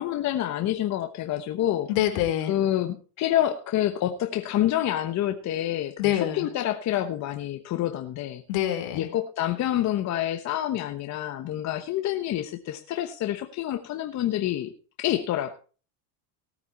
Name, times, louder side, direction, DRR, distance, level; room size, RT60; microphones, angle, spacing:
voice 1, 0.0-1.9 2.5-8.4 8.9-14.7 15.0-15.5, left 12 dB, 35° left, 6 dB, 1.1 m, -27 dB
voice 2, 1.9-2.5 6.0-6.5 8.5-9.1, left 12 dB, 65° left, 4 dB, 3.8 m, -25 dB
18.0 x 8.6 x 4.3 m, 0.38 s
supercardioid pair, 135°, 46 cm